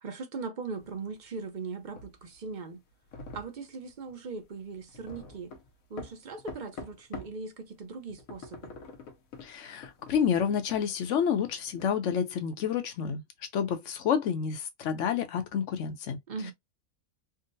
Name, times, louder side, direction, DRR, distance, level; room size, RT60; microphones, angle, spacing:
voice 1, 0.0-2.8 3.3-5.5 5.9-8.7 16.3-16.5, right 4 dB, 45° right, 0.7 m, -39 dB
sound 1, 0.8-7.4 7.8-11.9, left 3 dB, 80° left, 1.2 m, -46 dB
voice 2, 9.4-13.2 13.5-16.2, left 7 dB, 65° left, 1.0 m, -29 dB
3.7 x 2.1 x 2.6 m
omnidirectional pair, 1.4 m